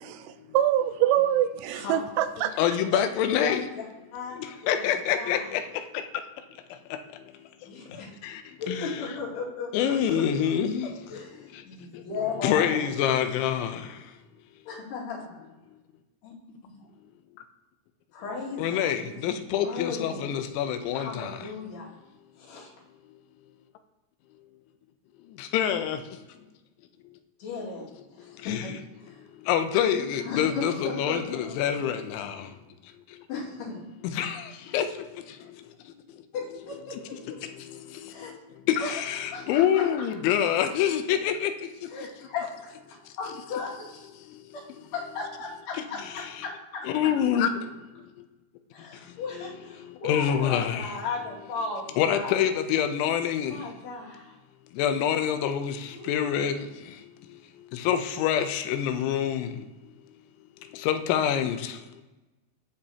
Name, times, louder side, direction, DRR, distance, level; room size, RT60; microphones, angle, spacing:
voice 1, 0.0-2.5, right 11 dB, 85° right, 11 dB, 2.5 m, -25 dB
voice 2, 2.6-3.6 4.7-5.6 8.2-8.4 8.7-9.0 9.7-10.9 12.4-13.8 18.6-21.4 25.4-26.0 28.5-28.7 29.5-32.4 34.1-34.5 34.7-34.9 38.7-41.5 46.0-46.3 46.8-47.5 50.0-50.9 52.0-53.6 54.8-55.8 56.1-56.6 57.7-59.5 60.8-61.7, left 9 dB, 90° left, 8 dB, 3.1 m, -26 dB
voice 3, 3.3-3.6 4.1-4.4 4.6-4.9 5.1-5.5 7.6-8.1 8.6-10.6 10.8-12.8 14.7-15.4 16.2-16.8 18.1-20.4 20.9-21.9 22.4-22.7 27.4-28.7 29.0-29.2 29.8-32.0 32.4-32.5 33.3-33.8 36.3-37.0 38.1-38.3 38.8-39.0 39.3-39.8 41.9-42.5 43.2-44.1 44.5-44.6 44.9-46.8 48.7-52.5 53.4-54.4 55.9-56.6, left 4 dB, 65° left, -5 dB, 4.0 m, -36 dB
16.0 x 5.4 x 2.9 m, 1.1 s
omnidirectional pair, 5.2 m